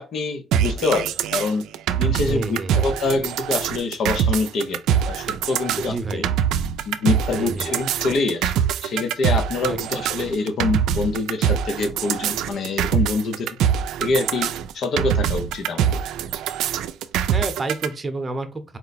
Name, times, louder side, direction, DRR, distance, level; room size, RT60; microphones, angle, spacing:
voice 1, 0.0-1.6 2.0-6.2 6.9-8.5 8.8-13.6 14.0-16.0, left 3 dB, 65° left, 7 dB, 0.7 m, -25 dB
sound 1, 0.5-17.9, right 9 dB, 90° right, 0.3 m, -23 dB
voice 2, 2.2-2.9 5.7-6.3 7.3-7.7 9.6-10.1 17.3-18.8, right 3 dB, 30° right, 8 dB, 0.8 m, -30 dB
4.5 x 2.1 x 4.0 m, 0.30 s
cardioid pair, 90°, 0 cm